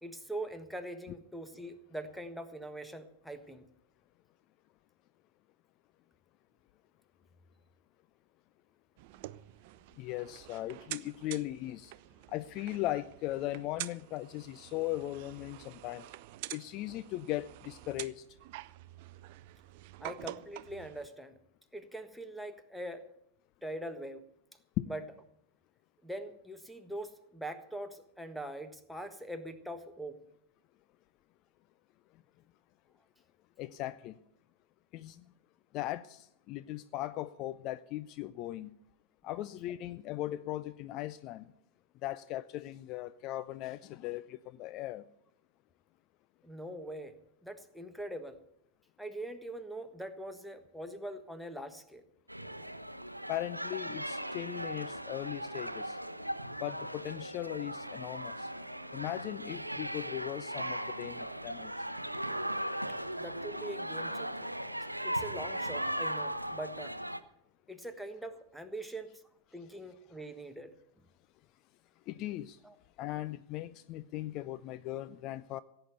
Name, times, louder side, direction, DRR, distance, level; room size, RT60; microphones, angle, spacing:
voice 1, 0.0-3.6 20.0-21.4 21.7-23.0 23.6-24.2 24.9-25.0 26.0-30.2 46.4-47.2 47.4-48.4 49.0-52.0 63.1-64.5 65.0-66.9 67.7-69.2 69.5-70.7 72.6-72.7, right 1 dB, ahead, 9 dB, 1.4 m, -42 dB
sound 1, 9.0-21.1, right 16 dB, 50° right, 0.5 m, -47 dB
voice 2, 10.0-11.9 12.3-16.0 16.5-18.2 24.8-24.9 33.6-34.1 34.9-35.2 35.7-38.7 39.2-41.5 42.0-45.0 53.3-56.0 56.6-58.5 58.9-61.7 72.1-72.6 73.0-75.6, left 15 dB, 40° left, 14 dB, 0.5 m, -38 dB
sound 2, 52.3-67.2, right 1 dB, 90° right, 0.7 m, -38 dB
16.0 x 9.0 x 8.0 m, 0.75 s
figure-of-eight pair, 90°, 0 cm